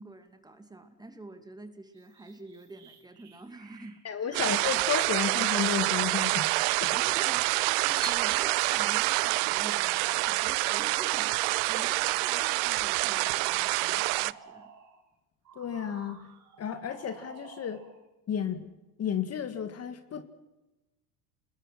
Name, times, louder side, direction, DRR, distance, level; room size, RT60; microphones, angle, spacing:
voice 1, 0.0-4.0 4.3-4.5 6.9-14.7, right 2 dB, 10° right, 7 dB, 2.5 m, -46 dB
sound 1, 1.9-12.1 12.6-15.0 15.4-18.0, right 6 dB, 40° right, 6.8 m, -53 dB
voice 2, 4.0-6.5 6.8-7.0 15.6-16.2 16.6-17.8 18.3-18.7 19.0-20.2, left 8 dB, 35° left, 9 dB, 1.9 m, -32 dB
sound 2, 4.3-14.3, right 24 dB, 60° right, 0.7 m, -27 dB
28.5 x 20.5 x 5.9 m, 1.0 s
supercardioid pair, 105°, 45 cm